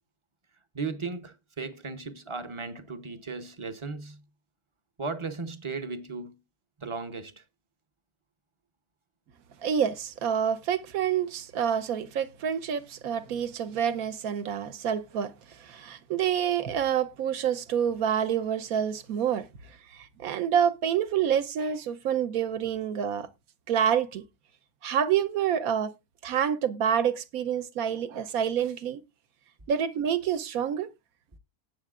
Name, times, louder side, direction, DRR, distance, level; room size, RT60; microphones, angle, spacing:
voice 1, 0.7-4.2 5.0-6.3 6.8-7.4, right 4 dB, 30° right, 0.6 m, -36 dB
voice 2, 9.6-19.5 19.9-23.3 23.7-24.2 24.8-25.9 26.2-29.0 29.7-30.9, right 8 dB, 70° right, 1.2 m, -27 dB
18.0 x 6.6 x 2.4 m
omnidirectional pair, 1.6 m